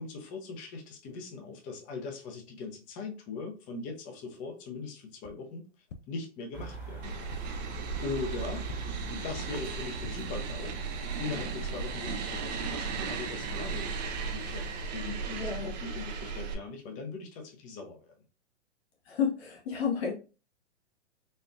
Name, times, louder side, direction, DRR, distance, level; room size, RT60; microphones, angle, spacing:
voice 1, 0.0-5.6 6.1-7.4 8.0-8.7 9.1-10.8 11.2-13.9 14.2-18.2, left 4 dB, 20° left, 0.7 m, -40 dB
sound 1, 5.2-5.3 5.9-6.0 6.6-6.7 7.3-7.4 7.9-8.0 8.6-8.7 9.3-9.4 9.9-10.1, left 5 dB, 80° left, 0.6 m, -45 dB
sound 2, 6.5-14.9, right 3 dB, 5° right, 0.9 m, -43 dB
sound 3, 7.0-16.5, right 5 dB, 35° right, 0.6 m, -36 dB
voice 2, 15.4-15.7 19.1-20.1, left 7 dB, 55° left, 1.1 m, -31 dB
4.2 x 2.5 x 2.4 m
hypercardioid pair, 135°, 37 cm